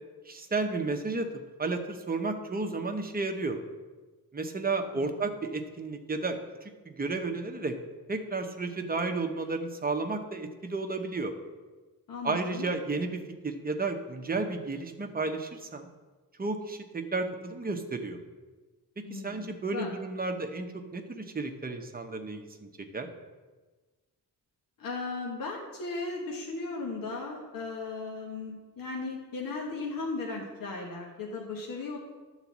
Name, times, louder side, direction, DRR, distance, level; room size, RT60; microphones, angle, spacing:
voice 1, 0.3-1.3 1.6-3.6 4.3-6.4 6.8-7.8 8.1-11.3 12.2-15.9 16.4-18.2 19.0-23.1, right 3 dB, 25° right, 5 dB, 0.8 m, -32 dB
voice 2, 12.1-12.7 19.0-19.5 19.7-19.9 24.8-32.0, left 3 dB, 60° left, -2 dB, 1.4 m, -36 dB
11.0 x 4.0 x 7.2 m, 1.3 s
wide cardioid pair, 135°, 38 cm